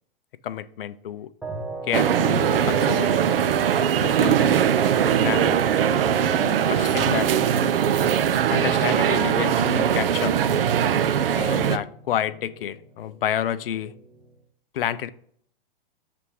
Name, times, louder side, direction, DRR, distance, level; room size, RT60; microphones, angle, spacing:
voice 1, 0.4-1.3 1.9-3.2 3.6-4.7 5.1-7.3 8.5-10.3 11.3-13.9 14.7-15.1, left 10 dB, 70° left, 14 dB, 0.5 m, -30 dB
sound 1, 1.9-11.8, right 9 dB, 75° right, 0.5 m, -21 dB
sound 2, 11.2-14.4, right 2 dB, 5° right, 0.7 m, -39 dB
6.8 x 3.4 x 4.7 m, 0.63 s
hypercardioid pair, 115°, 29 cm